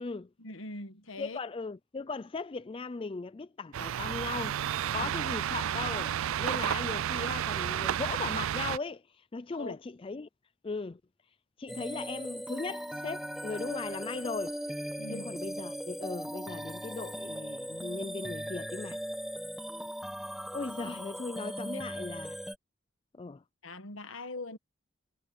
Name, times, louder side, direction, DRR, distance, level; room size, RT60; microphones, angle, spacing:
voice 1, 0.4-1.4 5.0-5.1 9.5-9.8 15.0-15.3 21.7-21.8 23.6-24.6, left 2 dB, 80° left, 1.5 m, -42 dB
voice 2, 1.2-4.6 4.9-10.3 10.6-11.0 11.6-14.6 15.1-19.0 20.5-22.4 23.2-23.4, left 4 dB, 25° left, 0.4 m, -38 dB
sound 1, 3.7-8.8, right 10 dB, 85° right, 0.4 m, -31 dB
sound 2, 11.7-22.6, equal, ahead, 1.6 m, -39 dB
head